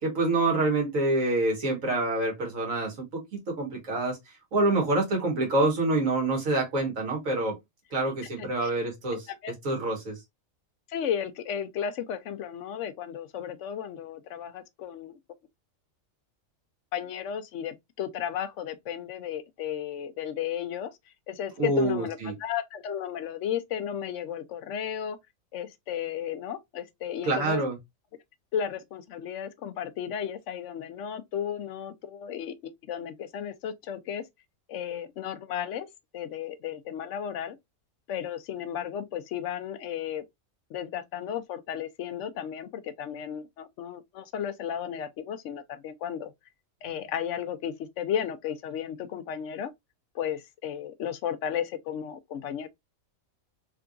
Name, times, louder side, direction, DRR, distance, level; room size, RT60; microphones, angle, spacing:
voice 1, 0.0-4.2 4.5-7.6 7.9-9.3 9.6-10.2 21.6-22.3 27.3-27.8, right 2 dB, 75° right, 1.9 m, -26 dB
voice 2, 8.4-8.7 9.1-9.5 10.9-15.2 16.9-21.0 21.3-25.2 25.5-27.6 28.5-34.2 34.7-35.9 36.1-37.6 38.1-40.2 40.7-46.3 46.8-49.7 50.1-52.7, left 9 dB, 70° left, 0.9 m, -34 dB
3.7 x 3.4 x 2.4 m
omnidirectional pair, 1.4 m